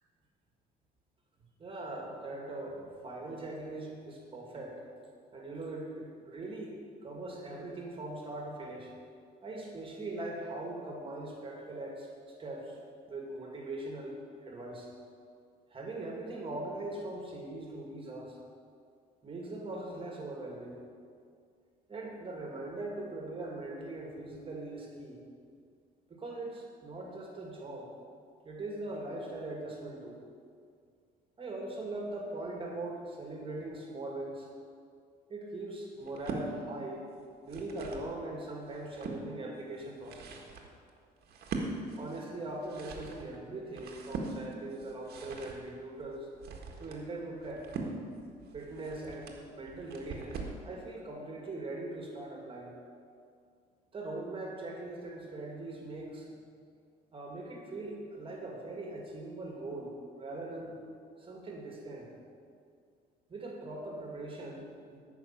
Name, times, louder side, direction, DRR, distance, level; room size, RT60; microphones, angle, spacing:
voice 1, 1.6-4.8 5.3-6.7 7.0-8.9 9.4-12.8 13.1-14.9 15.7-18.4 19.2-20.8 21.9-25.2 26.1-27.9 28.4-30.2 31.4-34.5 35.3-37.1 37.4-40.4 42.0-46.3 46.8-47.7 48.5-52.7 53.9-56.3 57.1-60.8 61.2-62.1 63.3-65.0, right 2 dB, 30° right, 0 dB, 2.2 m, -41 dB
sound 1, 36.0-36.5 37.2-38.1 38.6-39.2 39.8-50.6, right 3 dB, 65° right, 1.6 m, -42 dB
14.5 x 6.0 x 5.8 m, 2.2 s
cardioid pair, 110°, 17 cm